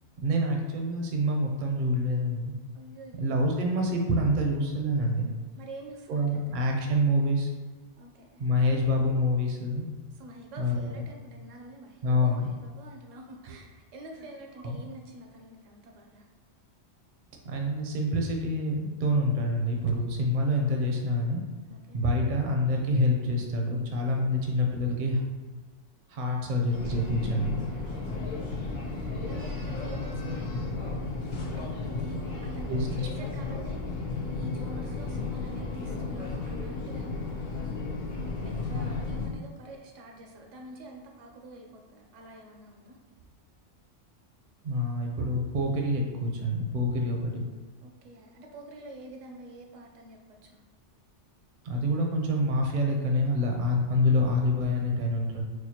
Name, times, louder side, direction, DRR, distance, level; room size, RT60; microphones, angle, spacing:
voice 1, 0.2-2.6 3.2-5.3 6.1-7.5 8.4-9.9 10.6-11.0 12.0-12.5 14.6-14.8 17.4-21.4 21.9-25.2 26.1-27.6 32.7-33.0 44.6-47.4 51.6-55.4, left 1 dB, 55° right, 1 dB, 0.6 m, -26 dB
voice 2, 2.7-3.5 5.6-6.6 8.0-8.5 10.1-16.3 21.7-22.0 27.6-37.8 38.4-43.0 47.8-50.6, right 1 dB, 85° right, 2 dB, 1.0 m, -47 dB
sound 1, 26.7-39.3, left 3 dB, 85° left, 1.1 m, -34 dB
4.2 x 2.3 x 2.8 m, 1.3 s
omnidirectional pair, 1.3 m